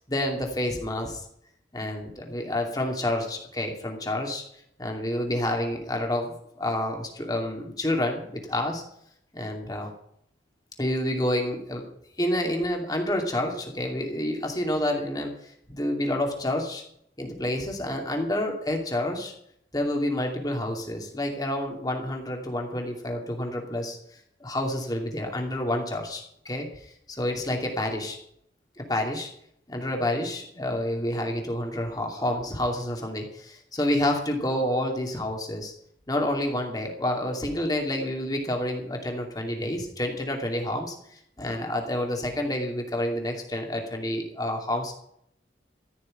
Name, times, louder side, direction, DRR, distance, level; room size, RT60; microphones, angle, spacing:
voice 1, 0.1-1.3 1.7-4.4 4.8-8.8 9.3-9.9 10.8-11.9 12.2-16.8 17.2-19.3 19.7-24.0 24.4-28.2 28.8-29.3 29.7-35.7 36.1-44.9, left 1 dB, 20° left, 2 dB, 2.6 m, -29 dB
14.5 x 6.6 x 10.0 m, 0.71 s
head